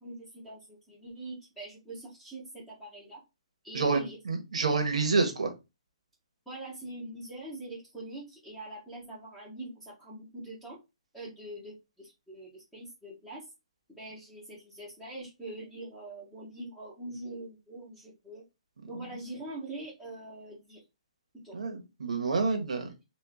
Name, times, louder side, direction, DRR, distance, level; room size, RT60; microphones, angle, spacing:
voice 1, 0.0-3.2 3.6-4.2 6.4-10.8 11.1-13.5 13.9-18.4 18.9-20.8 21.4-21.6, right 1 dB, 5° left, -6 dB, 1.3 m, -43 dB
voice 2, 3.7-5.5 21.5-23.0, right 4 dB, 85° right, 5 dB, 1.3 m, -28 dB
4.2 x 2.6 x 3.6 m, 0.25 s
hypercardioid pair, 155°, 3 cm